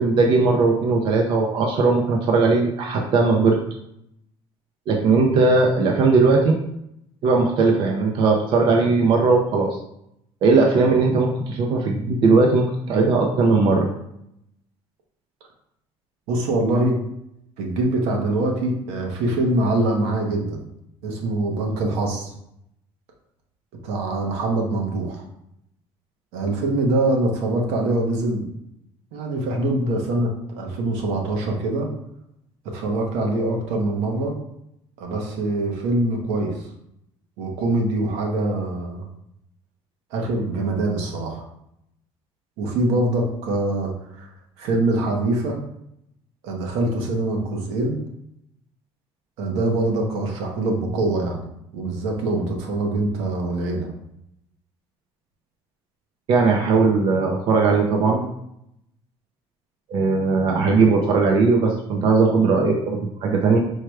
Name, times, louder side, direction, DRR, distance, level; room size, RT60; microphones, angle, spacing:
voice 1, 0.0-3.6 4.9-6.5 7.2-9.7 10.4-13.9 56.3-58.3 59.9-63.6, right 4 dB, 50° right, 1 dB, 0.5 m, -18 dB
voice 2, 16.3-17.0 17.6-20.6 21.0-22.3 23.8-25.2 26.3-28.5 29.1-31.9 32.6-34.3 35.0-36.6 37.4-39.0 40.1-41.4 42.6-43.9 44.2-44.3 44.6-45.6 46.4-48.0 49.4-51.4 51.7-53.9, right 2 dB, 85° right, 1 dB, 1.0 m, -24 dB
4.6 x 2.2 x 4.6 m, 0.79 s
cardioid pair, 145°, 11 cm